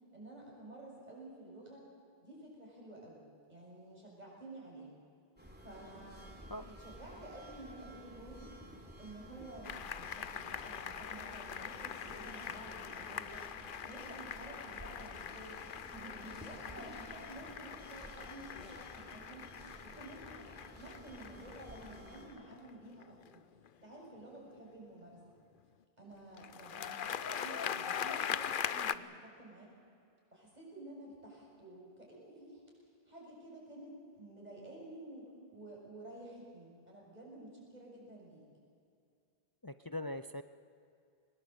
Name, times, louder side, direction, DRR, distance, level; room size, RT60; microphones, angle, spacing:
voice 1, 0.1-1.9 2.2-3.2 3.5-4.9 5.6-6.3 6.7-8.5 9.0-13.5 13.8-15.6 16.1-19.5 19.8-20.5 20.7-23.4 23.8-25.2 26.0-29.7 30.3-32.6 33.1-38.4, right 1 dB, 40° right, -3 dB, 7.3 m, -51 dB
sound 1, 5.4-22.3, right 1 dB, 10° right, 3.6 m, -53 dB
sound 2, 9.6-23.7 26.4-29.0, left 8 dB, 60° left, 0.8 m, -42 dB
voice 2, 39.6-40.4, left 1 dB, 25° left, 11 dB, 0.5 m, -41 dB
22.5 x 20.5 x 8.1 m, 2.4 s
omnidirectional pair, 1.0 m